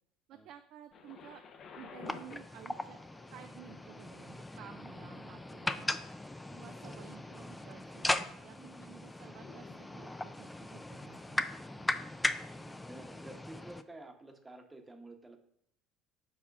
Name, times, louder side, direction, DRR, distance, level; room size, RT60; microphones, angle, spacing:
voice 1, 0.3-1.4 1.8-3.0 3.3-5.9 6.5-11.9, right 10 dB, 65° right, 7 dB, 0.4 m, -53 dB
Thunder, 0.9-12.8 13.5-13.6, left 6 dB, 50° left, 0.8 m, -56 dB
sound 1, 2.1-13.8, left 2 dB, 10° left, 0.4 m, -38 dB
voice 2, 8.5-8.9 12.5-15.4, right 2 dB, 15° right, 5 dB, 1.0 m, -51 dB
4.7 x 4.2 x 5.9 m, 0.72 s
supercardioid pair, 90°, 0 cm